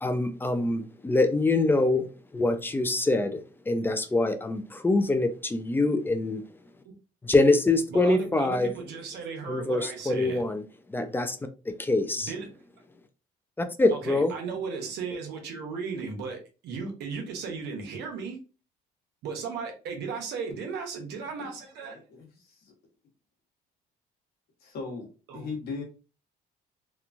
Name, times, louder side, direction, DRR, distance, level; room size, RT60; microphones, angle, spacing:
voice 1, 0.0-2.1 2.3-3.4 3.7-6.4 7.2-8.7 9.5-10.6 10.9-11.4 11.7-12.3 13.6-14.3, left 2 dB, 10° left, 0.3 m, -24 dB
voice 2, 7.9-10.4 12.2-12.6 13.9-18.4 19.2-22.0 25.3-25.5, right 5 dB, 80° right, 0.9 m, -36 dB
voice 3, 21.9-22.7 24.6-25.8, left 4 dB, 65° left, 1.1 m, -38 dB
3.0 x 2.2 x 2.4 m
cardioid pair, 110°, 17 cm